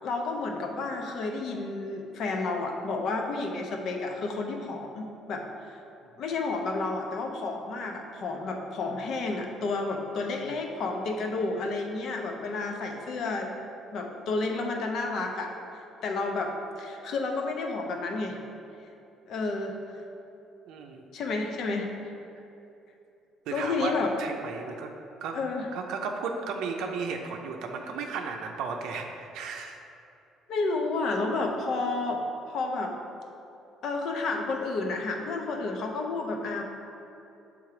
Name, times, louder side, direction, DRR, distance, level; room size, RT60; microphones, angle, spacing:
voice 1, 0.0-5.8 6.2-13.5 13.9-15.5 16.0-18.4 19.3-19.8 21.1-21.9 23.5-24.1 25.3-25.7 30.5-32.2 32.5-32.9 33.8-36.6, left 3 dB, 55° left, 3 dB, 0.7 m, -31 dB
voice 2, 20.7-21.0 23.5-23.9 24.2-24.9 25.2-25.4 25.7-29.8, right 5 dB, 75° right, 3 dB, 0.5 m, -34 dB
6.9 x 3.5 x 4.8 m, 2.8 s
cardioid pair, 145°, 0 cm